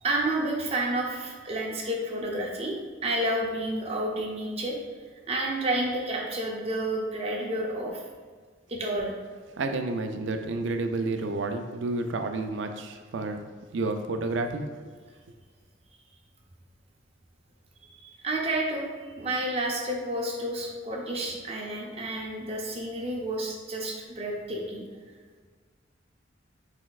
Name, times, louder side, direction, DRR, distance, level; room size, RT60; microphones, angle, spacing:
voice 1, 0.0-4.8 5.3-8.0 8.7-9.1 17.9-24.8, right 1 dB, 30° right, -1 dB, 0.6 m, -30 dB
voice 2, 9.6-13.4 13.7-14.9, right 2 dB, 70° right, 6 dB, 0.4 m, -30 dB
4.4 x 4.1 x 2.4 m, 1.5 s
head